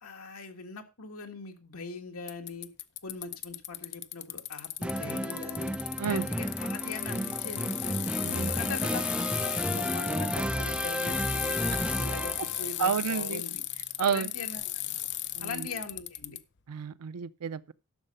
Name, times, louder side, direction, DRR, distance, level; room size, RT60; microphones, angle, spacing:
voice 1, 0.0-2.7 3.0-5.7 6.0-8.0 8.3-9.0 9.4-11.6 12.0-13.6 14.0-14.9 15.4-16.4, left 4 dB, 75° left, 1.9 m, -41 dB
Bicycle, 2.3-16.4, left 14 dB, 50° left, 0.6 m, -35 dB
sound 1, 4.8-12.7, right 1 dB, 5° right, 0.5 m, -32 dB
voice 2, 12.8-13.4 14.0-14.3 15.4-15.7 16.7-17.7, right 7 dB, 90° right, 0.5 m, -30 dB
12.0 x 6.4 x 5.4 m
head